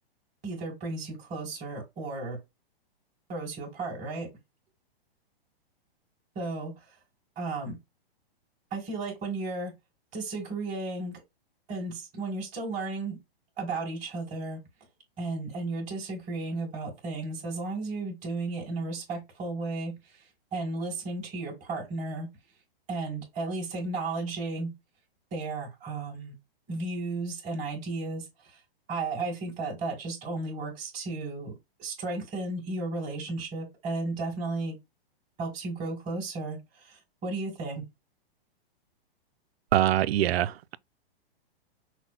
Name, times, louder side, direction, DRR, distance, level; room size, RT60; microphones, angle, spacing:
voice 1, 0.4-2.4 3.3-4.3 6.4-6.7 7.4-7.8 8.7-9.7 10.1-11.2 11.7-13.2 13.6-14.6 15.2-19.9 20.5-22.3 22.9-24.7 25.3-26.3 26.7-28.2 28.9-31.5 31.8-34.7 35.4-36.6 36.9-37.8, right 3 dB, 25° right, 2.2 m, -34 dB
voice 2, 39.7-40.8, right 12 dB, 80° right, 0.5 m, -24 dB
6.1 x 2.1 x 4.2 m
hypercardioid pair, 150°, 30 cm